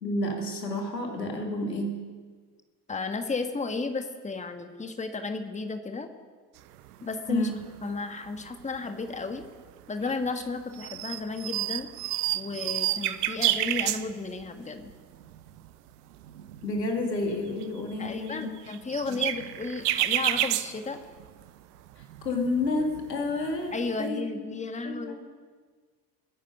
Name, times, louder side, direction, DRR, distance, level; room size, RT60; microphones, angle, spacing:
voice 1, 0.0-2.0 7.3-7.6 16.6-18.5 22.0-24.5 24.8-25.1, left 2 dB, 85° left, 2 dB, 2.2 m, -30 dB
voice 2, 2.9-6.1 7.0-7.5 7.8-9.4 9.9-11.9 12.3-14.9 18.0-21.0 23.7-25.1, left 3 dB, 15° left, 7 dB, 1.5 m, -33 dB
sound 1, 6.9-7.0 7.3-7.9 8.2-9.5 10.0-10.5 10.7-14.5 14.9-15.0 15.2-15.7 16.1-21.5 21.8-24.0, right 14 dB, 70° right, 0.8 m, -31 dB
22.0 x 10.0 x 5.4 m, 1.5 s
figure-of-eight pair, 55°, 48 cm